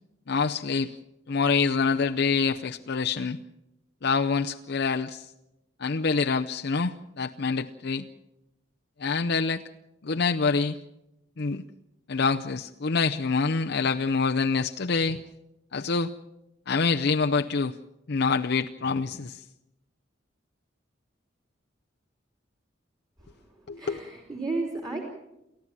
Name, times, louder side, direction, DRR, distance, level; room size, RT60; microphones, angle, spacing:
voice 1, 0.3-0.9 1.3-3.4 4.0-5.3 5.8-8.1 9.0-9.6 10.0-10.8 11.4-11.6 12.1-15.2 15.7-16.1 16.7-17.7 18.1-19.4 23.7-24.0, left 4 dB, 55° left, 4 dB, 0.7 m, -26 dB
voice 2, 23.2-25.0, right 3 dB, 20° right, 1 dB, 3.2 m, -34 dB
29.5 x 14.0 x 7.4 m, 0.91 s
head